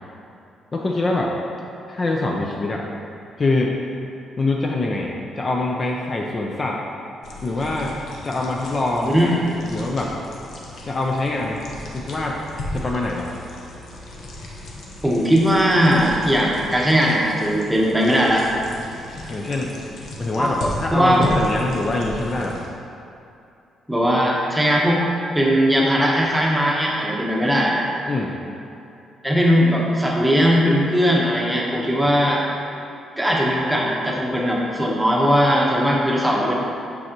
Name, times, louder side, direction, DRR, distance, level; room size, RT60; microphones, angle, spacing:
voice 1, 0.7-1.3 1.9-2.8 3.4-3.7 4.4-6.8 7.4-7.9 8.2-9.2 9.7-10.1 10.8-11.6 11.9-12.4 12.7-13.3 19.3-19.7 20.2-22.6 28.1-28.3 32.0-32.1, left 2 dB, 35° left, -1 dB, 0.5 m, -24 dB
sound 1, 7.2-22.7, left 1 dB, 65° left, 1.0 m, -35 dB
voice 2, 9.0-9.4 15.0-18.4 20.4-20.5 20.9-21.3 23.9-25.0 25.3-27.8 29.2-32.4 33.2-36.5, equal, 5° right, -3 dB, 1.0 m, -19 dB
6.2 x 5.4 x 2.9 m, 2.7 s
cardioid pair, 100°, 0 cm